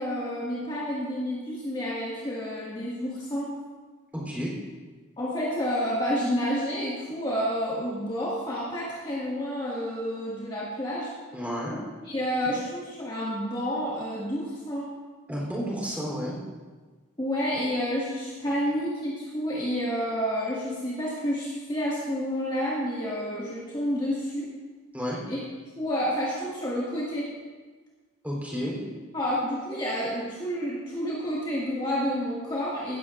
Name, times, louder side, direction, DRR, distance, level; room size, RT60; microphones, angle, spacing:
voice 1, 0.0-3.5 5.2-11.1 12.0-14.9 17.2-24.5 25.3-25.4 25.8-27.3 29.1-33.0, equal, 20° left, -7 dB, 1.9 m, -29 dB
voice 2, 4.1-4.5 11.3-11.8 15.3-16.4 24.9-25.2 28.2-28.7, equal, 5° right, -4 dB, 3.4 m, -31 dB
16.5 x 13.5 x 2.5 m, 1.4 s
head